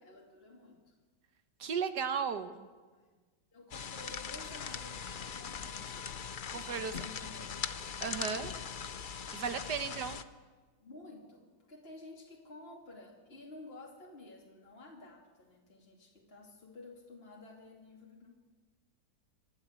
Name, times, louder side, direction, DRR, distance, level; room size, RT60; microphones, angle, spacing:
voice 1, 0.0-0.9 2.9-3.2 3.5-6.0 6.4-7.7 9.8-10.0 10.8-18.3, left 2 dB, 35° left, -2 dB, 2.7 m, -52 dB
voice 2, 1.6-2.7 6.5-7.0 8.0-8.5 9.3-10.2, right 6 dB, 70° right, 9 dB, 1.6 m, -35 dB
sound 1, 3.7-10.2, left 7 dB, 75° left, 0.4 m, -41 dB
25.5 x 12.5 x 8.2 m, 1.4 s
omnidirectional pair, 1.9 m